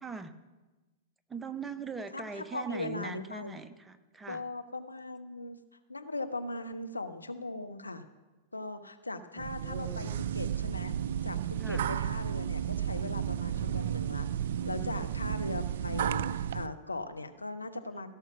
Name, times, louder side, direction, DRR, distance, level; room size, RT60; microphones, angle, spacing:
voice 1, 0.0-0.3 1.3-4.4 9.4-10.1 11.6-11.8, right 4 dB, 10° right, 9 dB, 0.7 m, -41 dB
voice 2, 2.1-3.6 4.3-5.6 5.9-8.0 8.5-10.9 11.2-14.3 14.6-18.1, left 2 dB, 85° left, 8 dB, 0.7 m, -39 dB
sound 1, 9.4-16.7, right 9 dB, 60° right, 0.3 m, -33 dB
16.5 x 5.8 x 5.8 m, 1.2 s
figure-of-eight pair, 100°, 0 cm